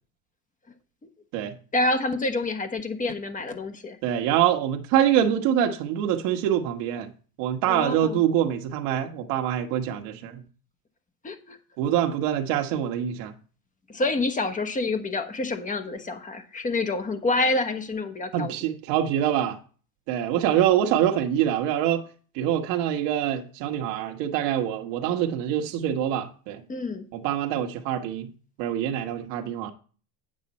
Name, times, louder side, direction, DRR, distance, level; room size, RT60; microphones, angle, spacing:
voice 1, 1.7-4.0 7.7-8.2 11.2-11.6 13.9-18.5 26.7-27.1, left 2 dB, 15° left, 1.2 m, -27 dB
voice 2, 4.0-7.1 7.4-10.4 11.8-13.3 18.3-19.6 20.1-22.0 22.3-26.6 27.1-28.3 28.6-29.7, right 10 dB, 65° right, 1.4 m, -25 dB
9.0 x 7.6 x 4.2 m
supercardioid pair, 125°, 47 cm